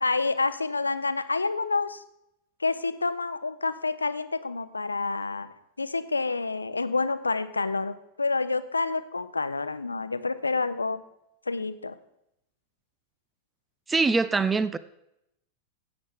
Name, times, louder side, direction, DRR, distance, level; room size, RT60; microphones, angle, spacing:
voice 1, 0.0-2.0 2.6-11.0 11.5-12.0, left 3 dB, 80° left, 13 dB, 0.6 m, -28 dB
voice 2, 13.9-14.8, right 4 dB, 15° right, 15 dB, 0.4 m, -23 dB
15.5 x 8.0 x 3.5 m, 0.82 s
figure-of-eight pair, 90°, 0 cm